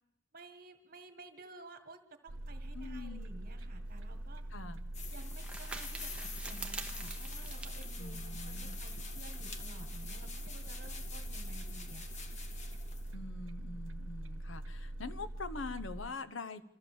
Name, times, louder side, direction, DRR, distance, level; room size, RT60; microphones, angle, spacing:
voice 1, 0.3-4.4 5.1-8.2 8.4-12.2, right 2 dB, 50° right, 8 dB, 1.6 m, -54 dB
sound 1, 2.3-16.1, right 1 dB, 80° right, 1.0 m, -43 dB
voice 2, 2.7-3.3 4.5-4.8 8.0-8.7 13.1-16.7, left 3 dB, 80° left, 13 dB, 1.0 m, -44 dB
sound 2, 3.9-9.1, right 3 dB, 5° right, 0.9 m, -47 dB
sound 3, 4.9-13.1, left 4 dB, 40° left, 1.4 m, -47 dB
26.0 x 14.0 x 7.3 m, 0.87 s
head